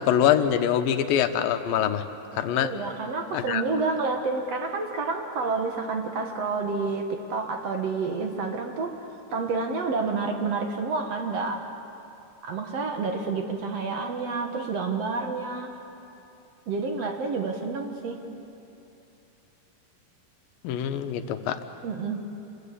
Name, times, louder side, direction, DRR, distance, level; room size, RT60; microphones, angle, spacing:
voice 1, 0.0-2.0 2.3-2.7 3.3-3.6 20.6-21.6, left 9 dB, 85° left, 8 dB, 2.8 m, -24 dB
voice 2, 2.6-9.0 9.3-11.7 12.4-15.7 16.7-18.4 21.8-22.2, right 4 dB, 55° right, 4 dB, 2.2 m, -29 dB
26.5 x 22.0 x 8.5 m, 2.9 s
omnidirectional pair, 4.0 m